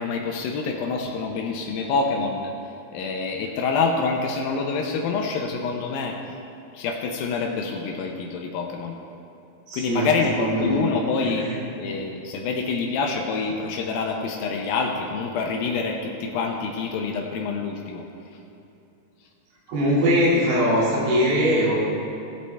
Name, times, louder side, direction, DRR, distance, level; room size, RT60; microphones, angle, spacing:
voice 1, 0.0-2.5 2.9-6.2 6.7-9.0 9.7-11.4 11.8-18.0, left 4 dB, 80° left, 2 dB, 2.5 m, -26 dB
voice 2, 9.7-10.1 10.4-10.8 11.2-11.5 19.7-21.8, equal, 90° right, -7 dB, 4.2 m, -21 dB
17.5 x 8.3 x 3.3 m, 2.8 s
omnidirectional pair, 4.2 m